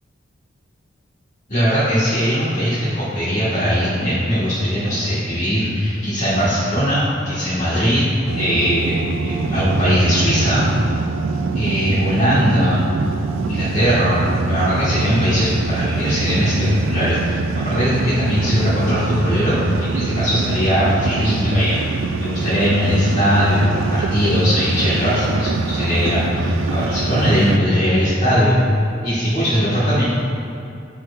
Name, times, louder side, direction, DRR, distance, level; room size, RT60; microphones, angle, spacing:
voice 1, 1.5-8.0 8.4-10.6 11.5-12.8 13.4-14.2 14.5-21.8 22.2-28.6 29.0-30.0, equal, 40° left, -11 dB, 1.5 m, -19 dB
sound 1, 8.3-27.6, right 4 dB, 70° right, 0.3 m, -24 dB
12.5 x 4.6 x 2.4 m, 2.6 s
head